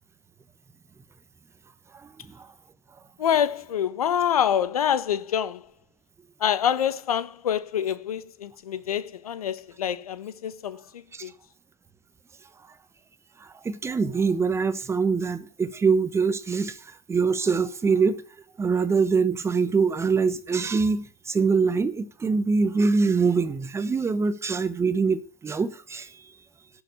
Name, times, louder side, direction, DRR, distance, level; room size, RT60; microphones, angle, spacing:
voice 1, 3.2-5.6 6.4-11.3, left 9 dB, 80° left, 1.5 m, -26 dB
voice 2, 13.6-16.8 17.1-18.2 18.6-26.1, right 5 dB, 15° right, 1.1 m, -24 dB
11.5 x 7.1 x 8.5 m
hypercardioid pair, 115°, 19 cm